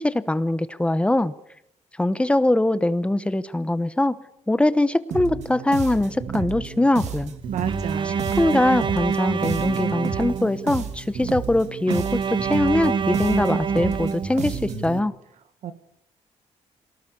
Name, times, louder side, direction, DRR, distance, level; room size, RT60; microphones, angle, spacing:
voice 1, 0.0-1.3 2.0-4.1 4.5-7.3 8.0-15.1, left 1 dB, 10° left, 14 dB, 1.0 m, -22 dB
sound 1, 5.1-15.0, right 6 dB, 75° right, 2.7 m, -32 dB
voice 2, 7.5-8.3 15.6-15.7, right 8 dB, 90° right, 11 dB, 2.0 m, -30 dB
Bowed string instrument, 7.7-10.9 11.9-14.8, right 6 dB, 45° right, 0.9 m, -26 dB
26.5 x 18.5 x 7.0 m, 0.83 s
cardioid pair, 140°, 12 cm